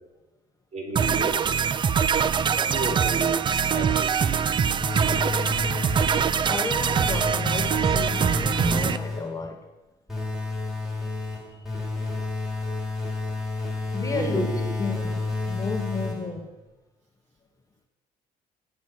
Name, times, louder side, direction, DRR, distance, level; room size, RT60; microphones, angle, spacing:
voice 1, 0.7-1.3 2.7-4.4 14.1-14.8, right 3 dB, 45° right, 3.2 m, -32 dB
sound 1, 1.0-9.0, right 7 dB, 30° right, 0.4 m, -23 dB
voice 2, 2.5-3.0 6.4-9.7 11.2-11.7 13.9-16.5, left 4 dB, 20° left, 0.9 m, -33 dB
sound 2, 4.8-6.5 6.9-9.4 10.1-16.5, left 3 dB, ahead, 2.9 m, -30 dB
8.9 x 8.0 x 6.0 m
cardioid pair, 110°, 17 cm